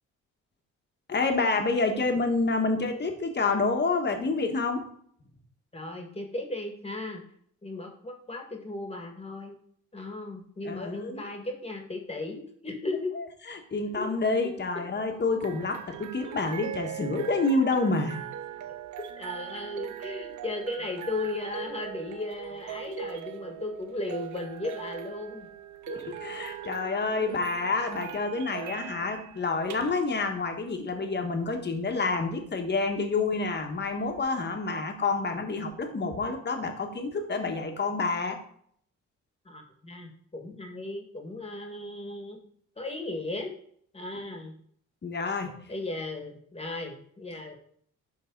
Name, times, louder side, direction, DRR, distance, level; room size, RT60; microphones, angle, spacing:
voice 1, 1.1-4.8 10.6-11.3 13.1-18.2 25.9-38.4 45.0-45.5, left 3 dB, 35° left, 4 dB, 1.5 m, -28 dB
voice 2, 5.7-7.2 7.6-9.6 9.9-13.1 14.0-14.1 19.2-25.5 39.5-42.4 42.8-43.5 43.9-44.5 45.7-47.6, left 2 dB, 20° left, 3 dB, 1.9 m, -36 dB
sound 1, 15.1-34.2, right 9 dB, 75° right, 0.7 m, -41 dB
11.5 x 3.9 x 3.9 m, 0.63 s
cardioid pair, 90°, 30 cm